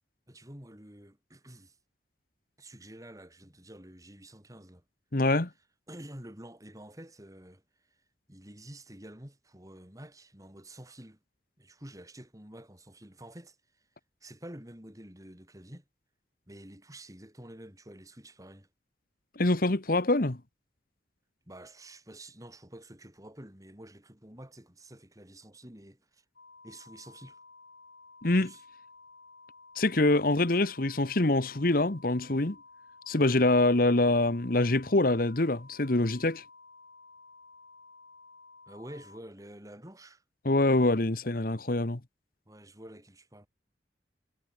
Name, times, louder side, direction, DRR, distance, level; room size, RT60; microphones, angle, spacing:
voice 1, 0.3-1.8 2.6-4.8 5.9-7.6 7.9-8.0 8.3-11.2 11.6-13.8 14.2-15.8 16.5-18.7 21.5-26.3 26.6-27.4 28.2-28.6 38.7-40.2 42.5-43.5, right 1 dB, 20° right, 5.2 m, -49 dB
voice 2, 5.1-5.5 19.4-20.4 28.2-28.5 29.7-32.6 33.1-36.4 40.4-42.0, left 2 dB, 55° left, 1.4 m, -25 dB
sound 1, 26.4-39.2, left 4 dB, 80° left, 6.1 m, -54 dB
head